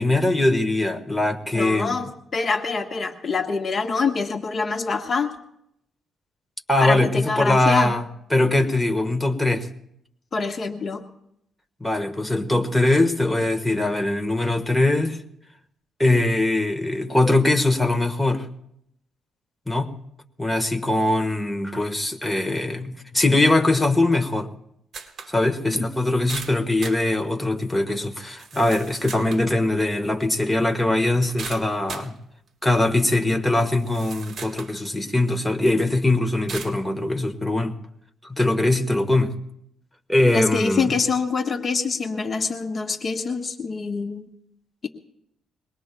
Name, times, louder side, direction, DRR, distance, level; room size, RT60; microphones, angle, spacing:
voice 1, 0.0-2.0 6.7-9.7 11.8-15.2 16.0-18.5 19.7-19.9 20.4-24.5 25.3-32.1 32.6-37.7 38.2-39.3 40.1-40.9, left 2 dB, 10° left, 1.4 m, -21 dB
voice 2, 1.5-5.3 6.8-7.9 10.3-11.0 40.3-44.3, left 4 dB, 40° left, 1.3 m, -25 dB
sound 1, 24.9-25.3 25.7-25.8 26.3-27.0 27.7-27.8 28.4-29.5 31.4-32.1 32.9-33.0 33.6-34.7 35.3-35.4 36.5-36.8, right 5 dB, 55° right, 1.6 m, -37 dB
22.5 x 19.5 x 2.3 m
cardioid pair, 90°, 0 cm